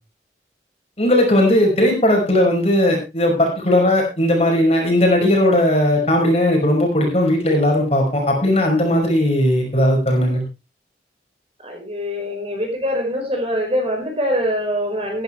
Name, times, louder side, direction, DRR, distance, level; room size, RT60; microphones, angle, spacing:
voice 1, 1.0-10.4, left 1 dB, 35° left, 1 dB, 5.4 m, -17 dB
voice 2, 11.6-15.2, equal, 35° right, 2 dB, 4.9 m, -23 dB
14.5 x 13.5 x 3.3 m, 0.27 s
head